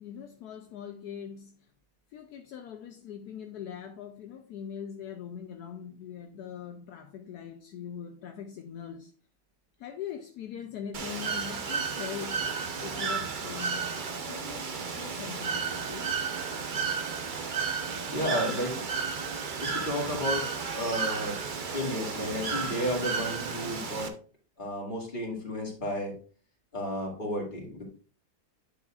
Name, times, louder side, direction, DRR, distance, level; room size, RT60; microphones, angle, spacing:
voice 1, 0.0-1.5 2.1-9.1 9.8-12.5 12.8-16.2, left 8 dB, 75° left, 1.2 m, -42 dB
Bird / Water, 10.9-24.1, right 5 dB, 45° right, 0.6 m, -33 dB
voice 2, 18.1-18.8 19.6-20.5 20.7-21.4 21.7-24.1 24.6-26.1 26.7-27.9, equal, 30° left, 2.4 m, -32 dB
9.6 x 6.6 x 2.4 m
omnidirectional pair, 1.8 m